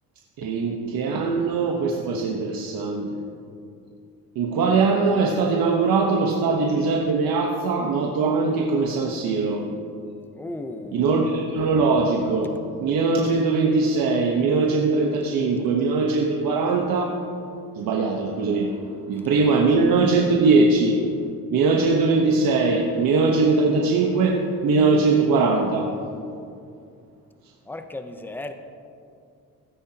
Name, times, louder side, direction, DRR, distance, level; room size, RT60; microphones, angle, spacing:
voice 1, 0.4-3.2 4.3-9.7 10.9-17.2 17.8-18.7 19.1-21.0 21.5-25.9, right 3 dB, 75° right, 0 dB, 1.2 m, -21 dB
voice 2, 10.3-11.1 27.7-28.5, left 2 dB, 5° left, 7 dB, 0.7 m, -35 dB
16.0 x 12.5 x 2.9 m, 2.5 s
cardioid pair, 110°, 35 cm